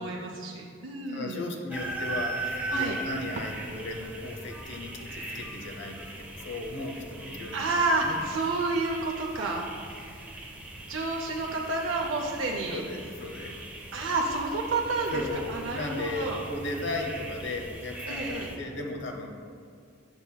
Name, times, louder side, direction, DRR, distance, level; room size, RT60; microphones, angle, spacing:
voice 1, 0.0-1.5 2.7-3.0 7.5-9.7 10.9-12.8 13.9-15.2 15.5-16.4 18.1-18.5, right 3 dB, 80° right, 0 dB, 0.5 m, -30 dB
voice 2, 0.8-7.6 8.0-8.2 12.7-13.6 15.1-19.3, left 2 dB, 65° left, 2 dB, 0.7 m, -36 dB
sound 1, 1.7-18.6, right 2 dB, 10° right, 0.6 m, -39 dB
7.9 x 5.5 x 2.2 m, 2.2 s
head